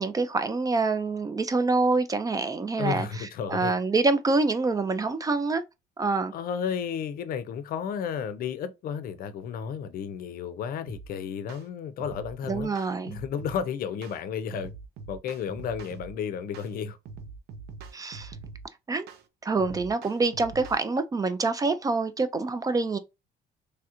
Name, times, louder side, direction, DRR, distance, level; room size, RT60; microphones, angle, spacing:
voice 1, 0.0-5.6 6.0-6.3 12.5-13.2 17.9-18.4 18.9-19.1 19.4-23.0, right 3 dB, 20° right, 0.3 m, -26 dB
voice 2, 2.8-3.7 6.3-12.7 13.1-14.7 15.1-17.0, left 7 dB, 60° left, 0.5 m, -32 dB
sound 1, 10.9-11.1 11.5-11.7 12.0-13.6 14.0-14.2 14.5-16.1 16.5-16.7 17.0-18.7 19.1-19.2 19.6-20.8, right 4 dB, 75° right, 0.6 m, -43 dB
3.2 x 2.4 x 2.8 m
cardioid pair, 110°, 17 cm